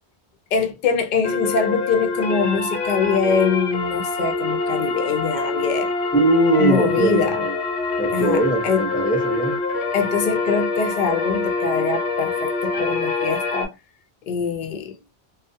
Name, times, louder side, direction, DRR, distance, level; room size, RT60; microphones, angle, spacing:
voice 1, 0.5-5.9 6.6-7.4 8.1-8.9 9.9-13.8 14.3-15.0, left 5 dB, 55° left, 0.6 m, -23 dB
sound 1, 1.2-13.6, left 3 dB, 90° left, 0.9 m, -25 dB
voice 2, 6.1-7.5 8.0-9.6, right 2 dB, 10° left, 0.7 m, -20 dB
2.2 x 2.1 x 2.6 m
omnidirectional pair, 1.1 m